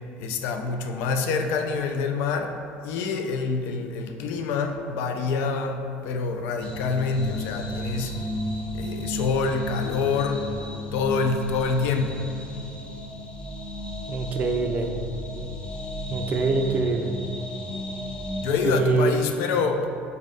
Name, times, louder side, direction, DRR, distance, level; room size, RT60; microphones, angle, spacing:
voice 1, 0.2-2.6 2.8-8.1 8.7-10.5 10.9-12.3 18.4-19.9, left 4 dB, 75° left, 6 dB, 0.4 m, -26 dB
sound 1, 6.6-18.6, left 1 dB, 25° left, 0.5 m, -34 dB
voice 2, 14.1-14.9 16.1-17.1 18.6-19.2, right 4 dB, 40° right, 5 dB, 0.4 m, -24 dB
4.0 x 2.7 x 4.8 m, 2.5 s
cardioid pair, 125°, 4 cm